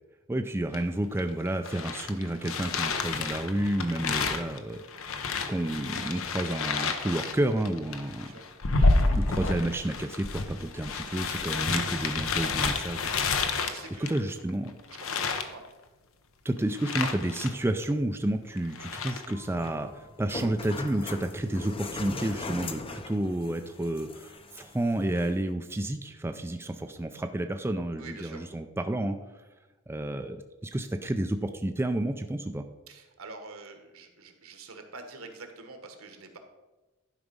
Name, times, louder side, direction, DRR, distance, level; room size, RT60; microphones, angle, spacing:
voice 1, 0.3-5.1 5.5-8.3 9.1-13.1 14.0-14.7 16.4-29.2 29.9-32.6, right 1 dB, 10° right, 6 dB, 0.4 m, -30 dB
sound 1, 0.7-0.8 1.2-14.5 14.9-15.5 16.8-17.5 17.8-17.9 18.6-19.3, left 3 dB, 70° left, 0.8 m, -30 dB
voice 2, 13.4-14.2 14.9-15.7 28.0-28.4 32.9-36.4, right 3 dB, 75° right, 6 dB, 1.4 m, -46 dB
sound 2, 19.3-25.4, left 2 dB, 25° left, 0.7 m, -40 dB
11.5 x 5.0 x 5.3 m, 1.1 s
head